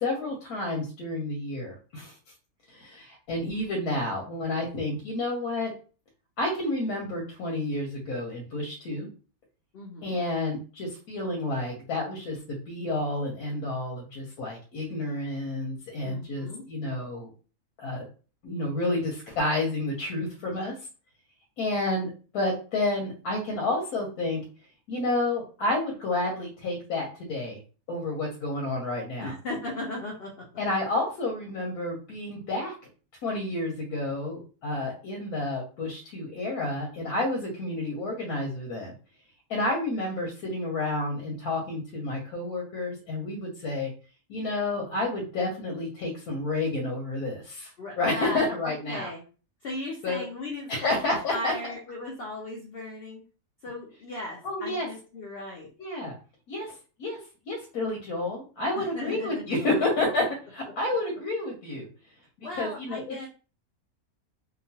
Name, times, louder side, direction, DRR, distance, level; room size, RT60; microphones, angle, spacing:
voice 1, 0.0-2.1 2.7-5.7 6.4-9.1 10.0-17.3 17.8-18.0 18.4-20.7 21.6-24.4 24.9-27.6 27.9-29.3 30.6-32.7 33.2-38.9 39.5-43.9 44.3-47.7 48.0-49.1 50.0-50.2 50.7-51.5 54.4-54.9 55.8-56.1 56.5-57.2 57.5-61.9 62.4-63.0, left 2 dB, 90° left, -1 dB, 1.2 m, -30 dB
voice 2, 9.7-10.2 16.0-16.6 29.2-30.4 47.8-49.2 49.6-51.0 51.3-53.2 53.6-55.7 58.7-59.4 62.4-63.3, left 1 dB, 60° left, -1 dB, 0.6 m, -37 dB
2.9 x 2.3 x 2.7 m, 0.37 s
omnidirectional pair, 1.5 m